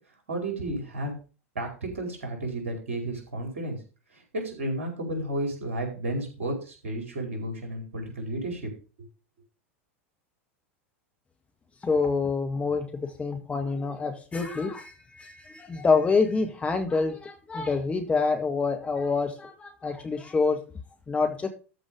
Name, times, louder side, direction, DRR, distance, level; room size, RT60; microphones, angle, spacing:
voice 1, 0.3-1.1 1.5-3.8 4.3-8.7, right 1 dB, 70° right, 2 dB, 4.8 m, -32 dB
voice 2, 11.8-20.6 21.1-21.5, left 4 dB, 15° left, 4 dB, 1.8 m, -27 dB
13.5 x 5.1 x 5.0 m, 0.35 s
figure-of-eight pair, 90°, 7 cm